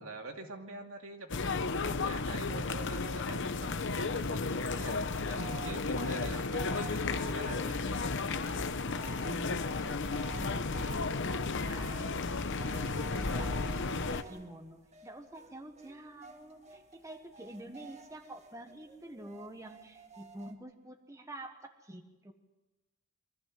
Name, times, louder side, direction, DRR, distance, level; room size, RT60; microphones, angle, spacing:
voice 1, 0.0-5.0 5.3-7.8, right 2 dB, 70° right, 2 dB, 2.7 m, -46 dB
sound 1, 1.3-14.2, left 3 dB, 60° left, 0.9 m, -33 dB
sound 2, 4.6-20.5, right 3 dB, 30° right, 1.8 m, -50 dB
voice 2, 9.1-12.3 12.7-22.3, right 1 dB, 15° right, 4 dB, 1.4 m, -48 dB
24.0 x 15.0 x 7.7 m, 1.1 s
head